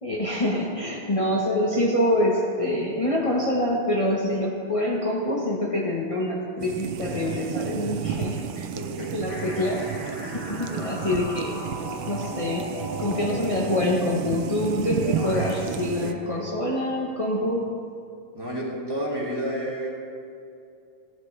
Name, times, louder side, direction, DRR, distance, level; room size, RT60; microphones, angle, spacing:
voice 1, 0.0-8.7 9.1-11.6 12.1-17.8, left 1 dB, 35° left, -4 dB, 0.5 m, -26 dB
sound 1, 6.6-16.1, right 8 dB, 75° right, 1.5 m, -32 dB
voice 2, 8.7-9.2 15.8-16.5 18.3-19.9, equal, 10° right, -5 dB, 2.4 m, -31 dB
sound 2, 9.3-15.6, equal, 55° left, 3.2 m, -37 dB
17.0 x 12.0 x 3.3 m, 2.5 s
omnidirectional pair, 2.4 m